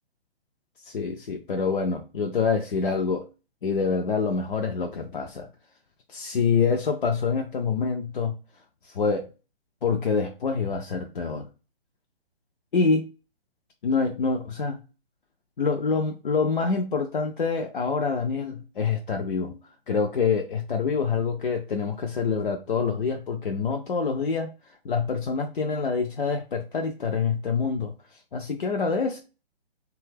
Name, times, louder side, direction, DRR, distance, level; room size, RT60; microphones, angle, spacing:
voice 1, 0.8-3.3 3.6-5.5 6.1-8.3 8.9-9.3 9.8-11.5 12.7-13.0 13.8-14.8 15.6-19.6 19.9-24.5 24.8-27.9 28.3-29.2, left 5 dB, 55° left, 0.4 m, -26 dB
2.6 x 2.3 x 3.3 m
figure-of-eight pair, 135°, 31 cm